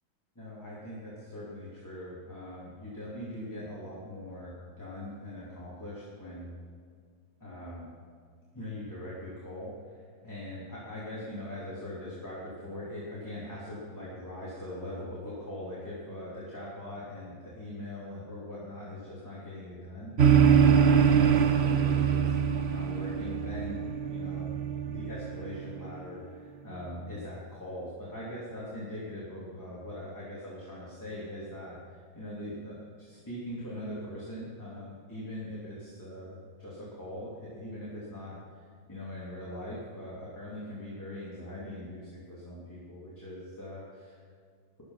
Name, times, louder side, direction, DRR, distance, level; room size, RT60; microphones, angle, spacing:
voice 1, 0.3-6.5 7.4-7.9 8.5-22.3 22.6-24.6 24.9-38.3 38.9-44.2, left 1 dB, 10° left, -8 dB, 2.9 m, -41 dB
sound 1, 20.2-25.8, right 7 dB, 80° right, 0.5 m, -24 dB
14.0 x 11.5 x 5.8 m, 2.1 s
omnidirectional pair, 2.2 m